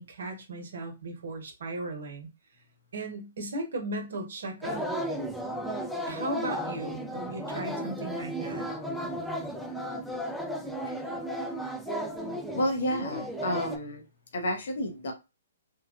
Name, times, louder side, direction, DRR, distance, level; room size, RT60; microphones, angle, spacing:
voice 1, 0.0-2.3 2.9-4.8 6.1-8.7, right 2 dB, 70° right, 0.9 m, -36 dB
sound 1, 4.6-13.8, equal, ahead, 0.4 m, -34 dB
voice 2, 12.5-14.0 14.3-15.1, equal, 65° left, 0.6 m, -30 dB
3.0 x 2.2 x 2.4 m
hypercardioid pair, 130°, 0 cm